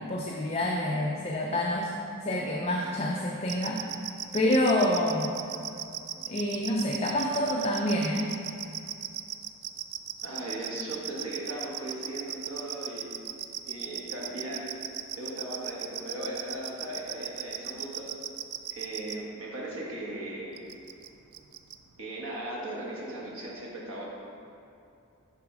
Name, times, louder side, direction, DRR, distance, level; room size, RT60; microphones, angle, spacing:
voice 1, 0.0-1.9 2.2-3.8 4.3-5.3 6.3-8.3, left 1 dB, 30° left, -1 dB, 0.5 m, -27 dB
sound 1, 3.5-19.1 20.6-21.1 21.3-21.7, right 12 dB, 90° right, 0.4 m, -36 dB
voice 2, 10.2-13.1 13.7-14.7 15.2-18.1 18.7-20.6 22.0-24.0, right 1 dB, 65° right, -4 dB, 1.3 m, -38 dB
8.4 x 4.0 x 4.8 m, 2.7 s
head